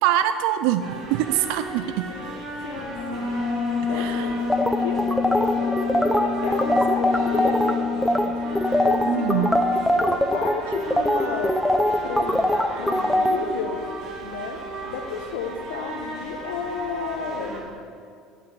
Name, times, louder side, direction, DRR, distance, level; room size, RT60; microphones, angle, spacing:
voice 1, 0.0-2.1 3.9-4.3 9.0-9.5, right 12 dB, 75° right, 10 dB, 0.4 m, -24 dB
sound 1, 0.8-17.6, right 2 dB, 50° right, 2.5 m, -36 dB
voice 2, 2.1-8.5 8.9-11.6 12.0-13.8 14.2-17.8, left 5 dB, 90° left, 5 dB, 0.9 m, -33 dB
Wind instrument woodwind instrument, 2.9-9.7, left 5 dB, 35° left, 2.4 m, -27 dB
sound 2, 4.5-7.7 8.0-8.3 8.6-13.4, left 1 dB, 5° left, 0.6 m, -21 dB
8.1 x 6.0 x 7.9 m, 2.2 s
supercardioid pair, 105°, 0 cm